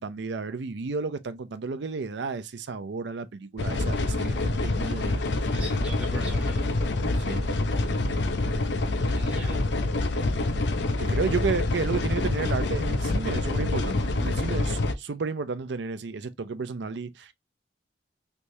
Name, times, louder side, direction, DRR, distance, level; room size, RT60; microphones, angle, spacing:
voice 1, 0.0-5.3 7.1-7.5 11.0-17.3, right 4 dB, 70° right, 0.5 m, -32 dB
sound 1, 3.6-14.9, left 2 dB, 70° left, 0.6 m, -26 dB
voice 2, 5.5-6.6 9.0-9.6, right 1 dB, 10° right, 1.2 m, -41 dB
3.4 x 2.7 x 3.0 m
head